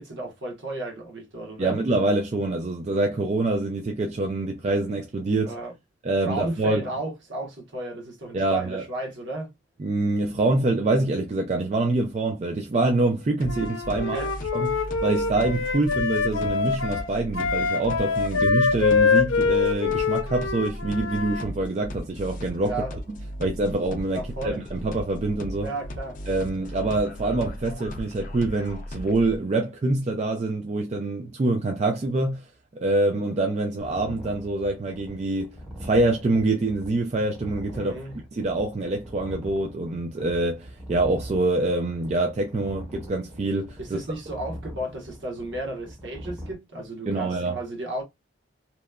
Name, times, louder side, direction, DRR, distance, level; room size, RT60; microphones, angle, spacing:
voice 1, 0.0-1.8 5.4-5.7 6.3-9.5 14.1-14.3 22.6-22.9 24.1-24.6 25.6-26.2 37.7-38.1 43.8-48.0, right 2 dB, 65° right, 1.1 m, -33 dB
voice 2, 1.6-5.5 6.0-6.8 8.3-8.8 9.8-14.2 14.5-22.8 23.1-25.7 26.3-32.5 32.7-37.9 38.3-44.0 47.1-47.6, right 2 dB, 35° right, 0.3 m, -25 dB
sound 1, 13.4-29.4, equal, 40° left, 0.5 m, -37 dB
Wind instrument woodwind instrument, 13.5-21.5, left 5 dB, 85° left, 0.6 m, -25 dB
sound 2, 33.8-46.5, equal, 5° right, 0.6 m, -42 dB
2.9 x 2.1 x 2.2 m
head